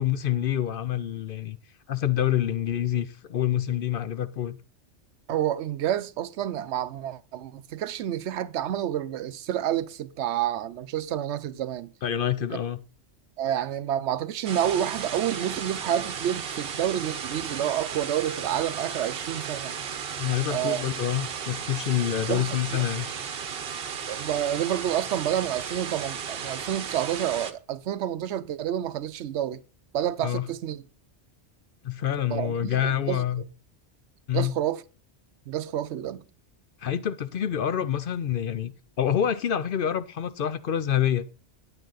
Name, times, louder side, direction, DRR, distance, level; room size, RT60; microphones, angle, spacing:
voice 1, 0.0-1.6 1.9-4.6 12.0-12.8 20.2-23.1 30.2-30.5 31.8-33.4 34.3-34.5 36.8-38.7 39.0-41.3, left 10 dB, 60° left, 0.7 m, -27 dB
voice 2, 5.3-11.9 13.4-19.7 20.5-20.8 22.3-22.8 24.1-29.6 29.9-30.8 32.3-33.2 34.3-34.8 35.5-36.2, right 11 dB, 80° right, 0.9 m, -29 dB
sound 1, 14.4-27.5, right 7 dB, 60° right, 1.0 m, -35 dB
9.0 x 8.9 x 3.9 m
omnidirectional pair, 1.2 m